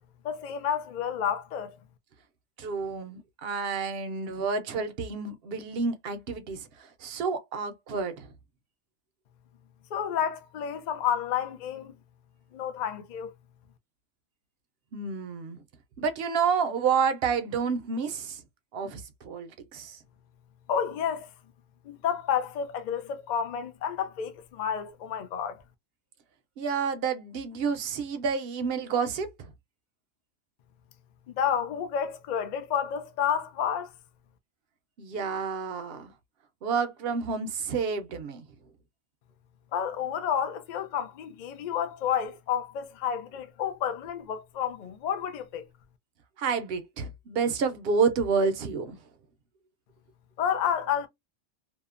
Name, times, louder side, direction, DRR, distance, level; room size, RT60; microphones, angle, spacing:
voice 1, 0.2-1.8 9.9-11.9 12.5-13.3 20.7-21.3 21.8-25.6 31.3-33.9 39.7-45.6 50.4-51.1, left 8 dB, 65° left, 0.4 m, -30 dB
voice 2, 2.6-8.3 14.9-15.6 16.0-18.4 18.7-20.0 26.6-29.5 35.0-36.1 36.6-38.4 46.4-49.0, right 5 dB, 60° right, 0.7 m, -29 dB
2.7 x 2.0 x 2.4 m
omnidirectional pair, 1.3 m